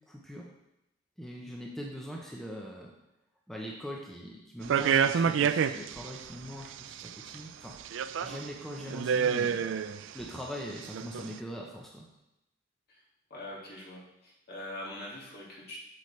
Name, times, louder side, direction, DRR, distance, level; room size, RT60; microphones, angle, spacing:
voice 1, 0.1-0.5 1.2-2.9 3.5-7.7 8.2-9.8 10.1-12.1, equal, ahead, -2 dB, 0.7 m, -42 dB
sound 1, 4.6-6.2 6.6-7.3 7.8-8.5 8.8-10.2 10.8-11.3, right 7 dB, 80° right, 0.3 m, -28 dB
voice 2, 13.3-15.8, left 1 dB, 55° left, -5 dB, 2.2 m, -43 dB
7.8 x 6.9 x 3.2 m, 0.88 s
head